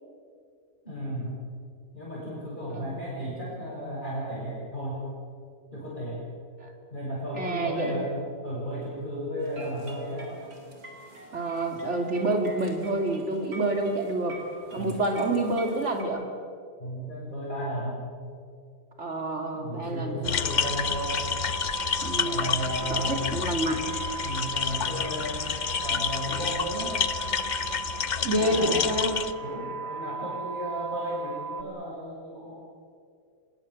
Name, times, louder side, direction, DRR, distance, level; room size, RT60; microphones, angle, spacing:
voice 1, 0.8-1.4 1.9-5.0 5.7-6.2 6.9-8.1 8.4-10.3 14.8-15.0 16.8-18.0 19.5-21.2 22.2-23.3 24.2-25.4 25.8-27.0 28.4-28.9 29.4-32.6, equal, 30° left, -7 dB, 6.9 m, -34 dB
voice 2, 2.7-3.0 6.6-6.7 7.3-8.1 11.3-14.4 14.7-16.2 19.0-20.4 22.0-22.5 22.9-23.9 28.2-29.2, right 1 dB, 45° right, 4 dB, 3.1 m, -28 dB
sound 1, 9.4-16.0, right 2 dB, 60° right, 4.0 m, -45 dB
sound 2, 20.2-29.3, left 7 dB, 65° left, 0.4 m, -29 dB
sound 3, 20.3-31.6, right 5 dB, 85° right, 2.3 m, -37 dB
26.0 x 20.5 x 7.4 m, 2.3 s
omnidirectional pair, 1.7 m